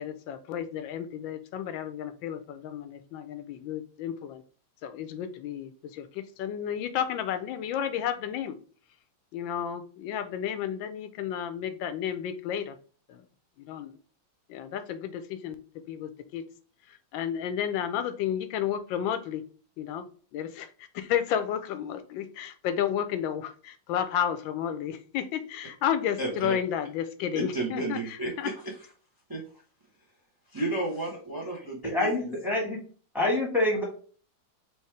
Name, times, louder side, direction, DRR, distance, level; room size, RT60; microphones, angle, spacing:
voice 1, 0.0-4.4 4.8-8.6 9.3-12.7 13.1-13.2 13.6-14.0 14.5-15.6 15.9-16.4 17.1-19.4 19.8-20.0 20.3-20.7 20.9-28.5, left 9 dB, 85° left, 10 dB, 1.3 m, -32 dB
voice 2, 26.2-26.5 27.3-28.7 29.3-29.4 30.5-32.3, right 2 dB, 20° right, -1 dB, 0.7 m, -32 dB
voice 3, 31.8-32.8 33.1-33.8, left 2 dB, ahead, -2 dB, 1.3 m, -26 dB
4.6 x 3.1 x 3.2 m, 0.41 s
omnidirectional pair, 2.0 m